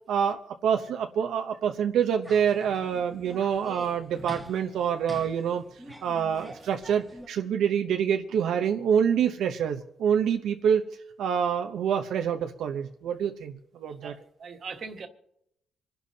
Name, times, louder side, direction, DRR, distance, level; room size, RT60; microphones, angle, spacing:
voice 1, 0.1-5.6 6.0-10.9 11.2-14.1, right 8 dB, 80° right, 5 dB, 0.8 m, -26 dB
sound 1, 2.2-7.3, right 1 dB, 5° right, 1.2 m, -46 dB
voice 2, 13.9-15.1, right 5 dB, 40° right, 3 dB, 1.5 m, -41 dB
27.0 x 11.5 x 2.8 m, 0.80 s
cardioid pair, 170°, 0 cm